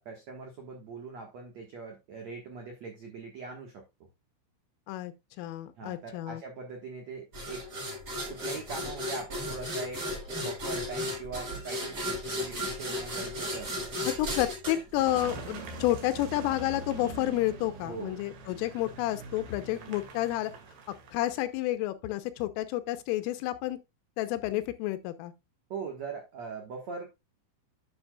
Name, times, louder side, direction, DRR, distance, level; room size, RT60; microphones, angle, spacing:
voice 1, 0.0-3.8 5.8-7.7 8.3-10.0 10.4-13.9 17.8-18.2 19.7-20.1 25.7-27.1, right 4 dB, 80° right, 1.5 m, -41 dB
voice 2, 4.9-6.4 14.0-20.5 21.1-23.8 24.2-25.3, left 15 dB, 85° left, 3.4 m, -30 dB
sound 1, 7.3-15.8, equal, 25° right, 4.9 m, -35 dB
Car passing by / Engine, 15.0-21.6, right 3 dB, 60° right, 3.3 m, -44 dB
11.0 x 7.0 x 2.4 m
omnidirectional pair, 5.7 m